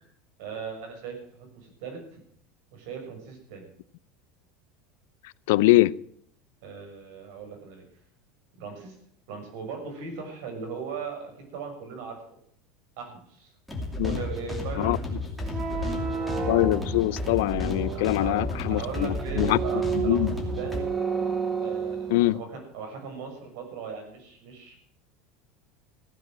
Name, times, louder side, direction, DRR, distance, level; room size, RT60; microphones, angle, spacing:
voice 1, 0.4-2.0 2.7-3.7 6.6-7.8 8.6-8.9 9.3-12.2 13.0-13.5 14.0-15.6 17.9-18.4 18.7-20.9 21.6-24.8, right 5 dB, 65° right, 3 dB, 6.5 m, -38 dB
voice 2, 5.5-5.9 14.0-14.2 14.8-15.0 16.5-19.6 20.0-20.3 22.1-22.4, left 18 dB, 70° left, 19 dB, 0.5 m, -23 dB
sound 1, 13.7-20.8, left 2 dB, ahead, 2.6 m, -32 dB
sound 2, 15.4-22.4, right 6 dB, 15° right, 1.7 m, -32 dB
15.5 x 9.9 x 7.7 m, 0.66 s
supercardioid pair, 170°, 0 cm